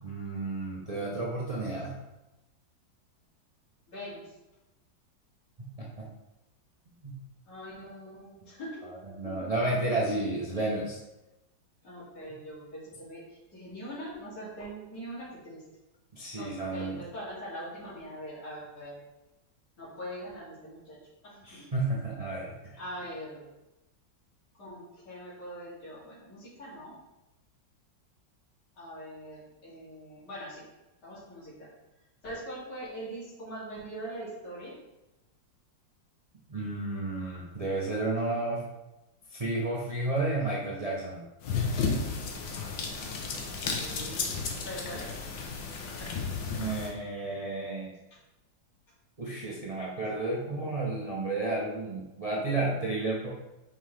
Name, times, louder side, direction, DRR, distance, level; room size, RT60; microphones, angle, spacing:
voice 1, 0.0-2.0 5.6-6.1 7.0-7.2 8.8-11.0 16.1-17.0 21.4-22.8 36.5-38.6 39.3-41.2 46.5-47.9 49.2-53.3, right 2 dB, 70° right, -5 dB, 0.3 m, -32 dB
voice 2, 3.9-4.3 7.5-8.8 9.2-9.5 11.8-15.6 16.4-19.0 19.8-21.0 21.2-21.6 22.8-23.4 24.6-26.9 28.8-30.6 31.0-31.7 32.2-34.7 43.5-44.4 44.6-45.1 46.0-46.3 48.1-48.2, equal, 60° left, -9 dB, 3.1 m, -42 dB
sound 1, 41.4-46.9, left 4 dB, 80° left, 1.5 m, -33 dB
5.6 x 5.3 x 3.2 m, 0.97 s
omnidirectional pair, 2.0 m